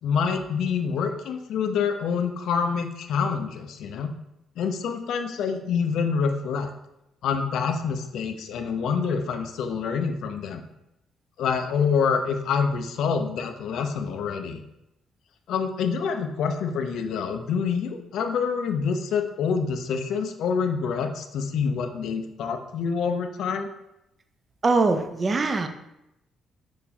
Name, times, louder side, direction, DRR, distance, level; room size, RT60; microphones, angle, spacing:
voice 1, 0.0-4.1 4.6-6.7 7.2-10.6 11.4-14.6 15.5-23.7, left 6 dB, 75° left, 6 dB, 0.3 m, -26 dB
voice 2, 24.6-25.7, right 3 dB, 35° right, 7 dB, 0.3 m, -22 dB
3.8 x 2.5 x 2.8 m, 0.87 s
cardioid pair, 90°, 0 cm